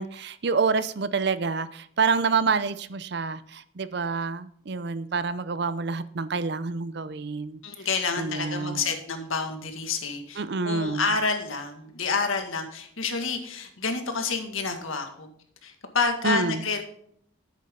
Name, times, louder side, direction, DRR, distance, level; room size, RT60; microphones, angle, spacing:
voice 1, 0.0-7.6 8.2-8.8 10.4-11.1 16.2-16.6, right 4 dB, 55° right, 0.6 m, -27 dB
voice 2, 7.6-15.3 15.6-16.8, left 4 dB, 80° left, 1.8 m, -29 dB
10.5 x 8.2 x 3.7 m
head